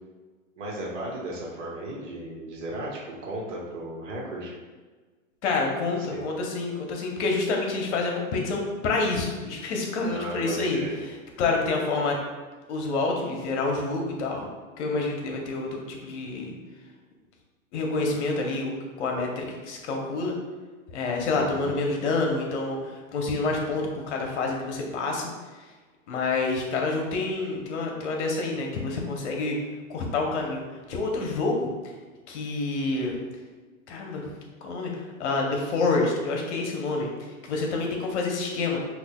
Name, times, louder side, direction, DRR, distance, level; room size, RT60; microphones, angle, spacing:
voice 1, 0.5-4.5 6.0-6.2 10.0-11.0 21.3-21.7, right 1 dB, 60° right, -3 dB, 1.2 m, -35 dB
voice 2, 5.4-10.8 11.4-12.2 12.7-14.5 14.8-16.5 17.7-20.3 20.9-25.3 26.1-29.6 29.9-30.6 30.9-31.7 32.3-33.2 33.9-34.2 34.6-38.8, left 3 dB, 55° left, 1 dB, 0.9 m, -28 dB
5.6 x 2.5 x 2.2 m, 1.4 s
hypercardioid pair, 135°, 41 cm